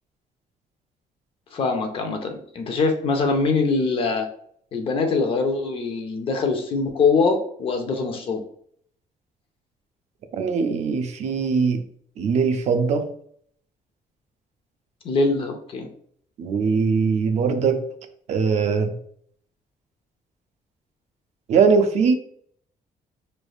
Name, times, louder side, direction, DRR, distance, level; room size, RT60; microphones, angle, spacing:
voice 1, 1.5-4.3 4.7-8.4 15.0-15.9, left 4 dB, 40° left, 4 dB, 0.6 m, -23 dB
voice 2, 10.3-11.8 12.2-13.1 16.4-17.8 18.3-19.0 21.5-22.1, right 5 dB, 55° right, 7 dB, 0.4 m, -21 dB
5.0 x 3.3 x 2.3 m, 0.64 s
cardioid pair, 180°, 14 cm